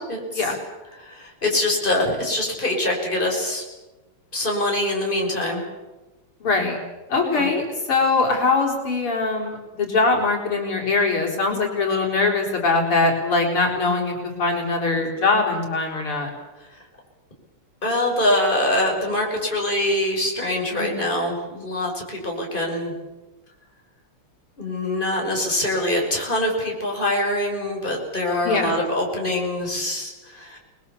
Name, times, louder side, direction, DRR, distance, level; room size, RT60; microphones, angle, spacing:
voice 1, 0.1-0.5 1.0-3.6 4.3-5.6 7.2-7.5 14.9-15.1 17.8-22.9 24.6-30.6, left 1 dB, 20° left, 0 dB, 6.1 m, -24 dB
voice 2, 6.4-6.8 7.1-7.6 7.9-16.3 20.7-21.0 28.4-28.8, left 3 dB, 80° left, 0 dB, 5.2 m, -22 dB
29.0 x 21.0 x 7.2 m, 1.1 s
omnidirectional pair, 2.4 m